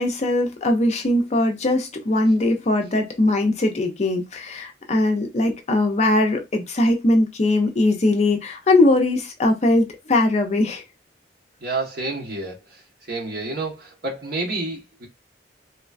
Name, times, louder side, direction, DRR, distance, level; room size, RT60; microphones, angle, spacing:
voice 1, 0.0-10.8, left 2 dB, 35° left, 0.4 m, -20 dB
voice 2, 11.6-15.1, right 2 dB, 55° right, 1.3 m, -29 dB
3.0 x 2.2 x 2.4 m
head